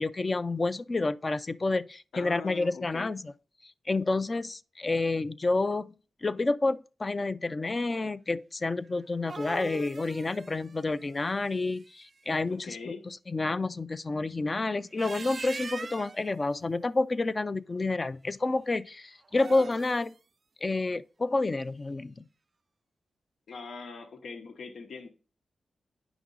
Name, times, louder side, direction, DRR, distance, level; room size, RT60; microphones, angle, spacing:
voice 1, 0.0-3.3 3.6-5.9 6.2-20.1 20.6-22.3, left 3 dB, 35° left, 0.5 m, -29 dB
voice 2, 2.1-3.1 12.5-13.0 23.5-25.1, left 4 dB, 85° left, 1.1 m, -42 dB
sound 1, 9.0-12.1 14.8-16.3 19.2-20.1, right 4 dB, 45° right, 0.3 m, -42 dB
9.3 x 6.0 x 3.9 m
cardioid pair, 85°, 0 cm